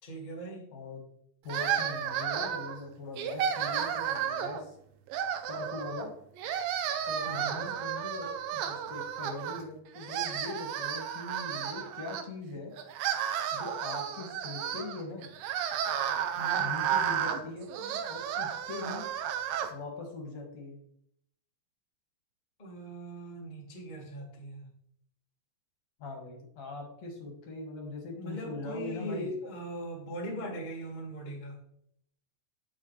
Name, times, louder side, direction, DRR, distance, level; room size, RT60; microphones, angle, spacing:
voice 1, 0.0-0.7 7.1-7.7 16.3-16.7 22.6-24.7 28.1-31.5, right 1 dB, 35° left, -3 dB, 0.7 m, -40 dB
voice 2, 0.7-1.0 1.4-4.7 5.5-6.1 7.1-12.7 13.5-15.3 16.6-17.7 18.1-19.1 19.7-20.8 26.0-29.3, left 3 dB, 55° left, 1 dB, 2.4 m, -41 dB
sound 1, 1.5-2.8 3.2-4.6 5.1-6.1 6.4-9.6 10.0-12.2 12.8-19.7, right 9 dB, 80° right, 2.2 m, -32 dB
8.6 x 6.9 x 3.2 m, 0.70 s
omnidirectional pair, 4.3 m